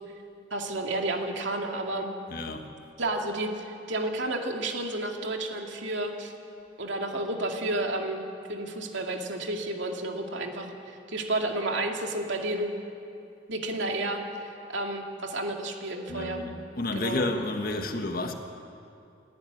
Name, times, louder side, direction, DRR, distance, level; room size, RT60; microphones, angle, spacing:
voice 1, 0.5-2.1 3.0-6.3 6.8-8.2 8.5-12.7 13.5-16.4 17.0-17.2, right 2 dB, 80° right, 2 dB, 2.4 m, -31 dB
voice 2, 2.3-2.7 16.1-18.3, left 2 dB, 50° left, 5 dB, 1.7 m, -31 dB
28.5 x 11.0 x 9.5 m, 2.6 s
head